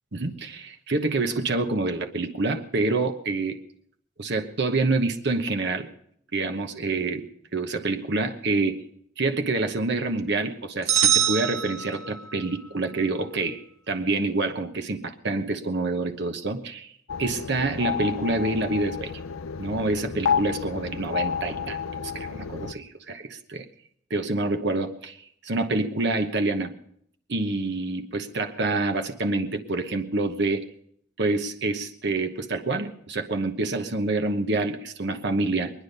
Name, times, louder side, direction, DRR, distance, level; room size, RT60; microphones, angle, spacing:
voice 1, 0.1-3.6 4.2-5.9 6.3-8.8 9.2-16.9 17.2-19.1 19.6-21.8 22.0-23.6 24.1-25.2 25.4-26.7 27.3-30.6 31.2-35.7, right 2 dB, 55° right, 6 dB, 1.0 m, -27 dB
sound 1, 10.9-12.4, right 10 dB, 75° right, 1.0 m, -23 dB
sound 2, 17.1-22.7, left 7 dB, 80° left, 0.6 m, -30 dB
22.5 x 10.0 x 5.3 m, 0.70 s
head